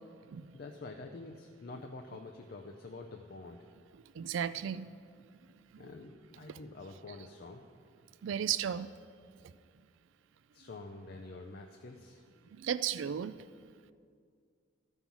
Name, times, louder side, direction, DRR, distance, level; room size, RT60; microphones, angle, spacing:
voice 1, 0.5-3.6 5.8-7.6 10.5-12.2, left 3 dB, 50° left, 3 dB, 0.5 m, -47 dB
voice 2, 4.2-4.9 6.5-6.6 8.2-8.9 12.6-13.3, right 9 dB, 70° right, 14 dB, 0.3 m, -34 dB
13.0 x 5.5 x 6.0 m, 2.2 s
head